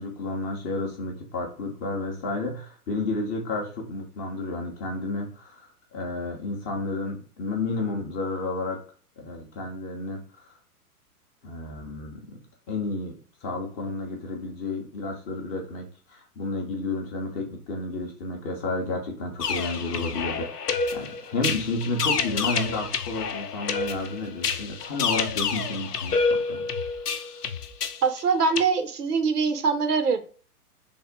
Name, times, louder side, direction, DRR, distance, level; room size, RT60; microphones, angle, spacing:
voice 1, 0.0-5.6 5.9-8.8 9.2-10.5 11.4-12.4 12.7-26.7, left 2 dB, 20° left, 1 dB, 0.4 m, -31 dB
sound 1, 19.4-28.6, left 5 dB, 90° left, 0.6 m, -28 dB
voice 2, 28.0-30.2, right 5 dB, 85° right, 8 dB, 0.8 m, -23 dB
3.4 x 2.1 x 3.8 m, 0.42 s
hypercardioid pair, 110°, 45 cm